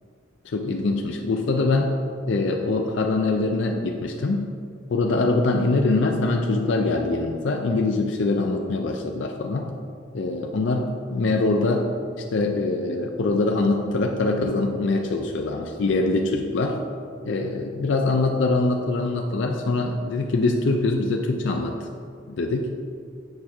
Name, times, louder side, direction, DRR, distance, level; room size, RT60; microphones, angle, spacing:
voice 1, 0.4-1.9 2.3-4.4 4.9-9.7 10.1-11.9 12.3-16.8 17.2-21.8 22.4-22.7, left 3 dB, 65° left, 3 dB, 0.4 m, -23 dB
6.7 x 4.7 x 4.3 m, 2.2 s
head